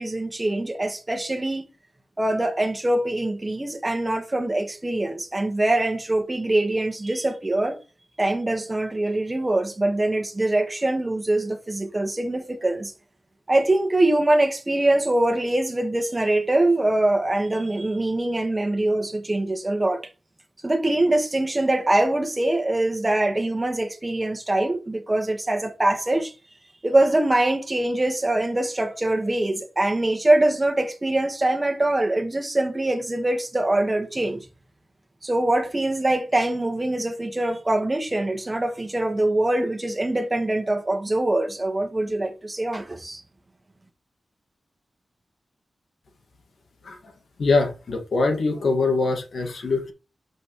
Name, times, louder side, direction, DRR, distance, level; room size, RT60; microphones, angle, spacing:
voice 1, 0.0-1.6 2.2-7.8 8.2-12.9 13.5-20.1 20.6-26.3 26.8-34.5 35.2-43.2, right 1 dB, 20° right, 1.5 m, -23 dB
voice 2, 47.4-49.9, left 3 dB, 70° left, 1.9 m, -23 dB
8.0 x 6.2 x 3.1 m
wide cardioid pair, 120°, 0 cm